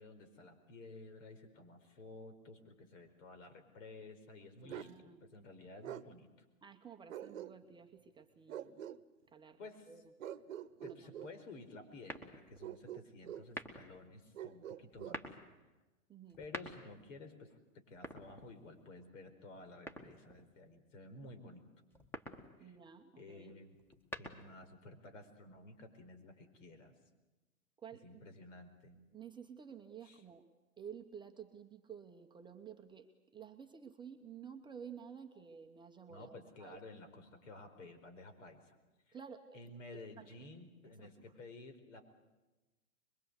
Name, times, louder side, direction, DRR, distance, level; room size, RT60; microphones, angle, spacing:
voice 1, 0.0-6.3 9.6-9.9 10.8-15.2 16.4-21.6 22.6-22.7 23.2-23.8 24.2-26.9 28.0-29.0 30.0-30.2 36.1-38.8 39.1-39.2 39.5-42.0, left 2 dB, 60° left, 8 dB, 4.7 m, -53 dB
voice 2, 4.6-5.2 6.6-8.9 9.3-9.6 9.9-10.0 10.8-11.2 16.1-16.4 22.6-23.5 27.8-28.2 29.1-30.4 30.8-36.8 39.1-39.6 39.9-40.3 40.8-41.2, right 7 dB, 10° right, 3 dB, 1.0 m, -52 dB
Bark, 4.7-5.0 5.8-6.1 7.1-7.8 8.5-9.0 10.2-11.3 12.6-13.5 14.3-15.2, right 11 dB, 60° right, 1.1 m, -46 dB
sound 1, 12.0-12.7 13.4-14.0 14.9-15.4 16.3-17.1 17.9-18.8 19.9-20.5 21.9-22.5 23.8-24.7, right 1 dB, 5° left, 1.8 m, -47 dB
25.0 x 22.5 x 8.2 m, 1.1 s
hypercardioid pair, 125°, 43 cm